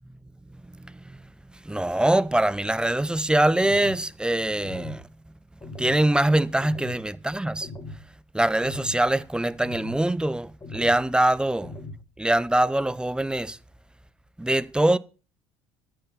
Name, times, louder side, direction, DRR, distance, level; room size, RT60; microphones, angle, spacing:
voice 1, 0.8-1.2 1.6-5.0 5.8-7.7 8.3-11.7 12.2-13.6 14.4-15.0, right 1 dB, 5° right, 0.6 m, -23 dB
sound 1, 3.6-4.0 4.6-5.0 5.6-6.0 6.6-7.0 7.6-8.0 8.6-9.0 9.6-10.0 10.6-11.0 11.6-12.0, left 2 dB, 25° left, 2.9 m, -39 dB
14.0 x 5.5 x 5.8 m
hypercardioid pair, 60°, 15 cm